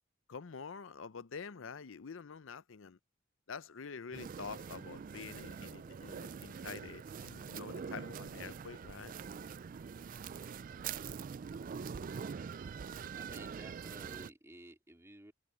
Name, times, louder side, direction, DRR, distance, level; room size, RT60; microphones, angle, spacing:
voice 1, 0.3-3.0 3.5-9.2, left 5 dB, 75° left, 0.6 m, -47 dB
sound 1, 4.1-14.3, right 6 dB, 45° right, 0.3 m, -44 dB
voice 2, 12.8-15.3, right 1 dB, 15° right, 2.8 m, -54 dB
open air
head